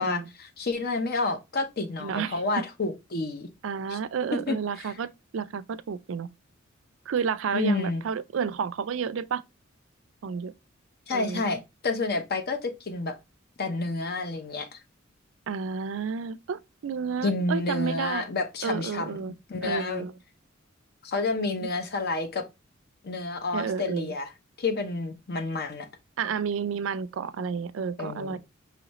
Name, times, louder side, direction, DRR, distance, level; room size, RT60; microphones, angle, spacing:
voice 1, 0.0-3.5 3.9-4.0 4.5-4.9 7.5-8.0 11.1-13.2 13.6-14.8 17.2-19.2 19.5-20.0 21.0-22.4 23.0-24.3 24.6-25.9 28.0-28.4, left 3 dB, 50° left, 0.7 m, -29 dB
voice 2, 2.0-2.6 3.6-5.1 5.3-6.3 7.1-9.4 10.2-10.5 11.1-11.4 15.5-18.2 18.6-19.3 19.6-20.1 21.3-21.7 23.5-24.1 26.2-28.4, right 6 dB, 65° right, 0.4 m, -31 dB
5.0 x 3.1 x 2.9 m
head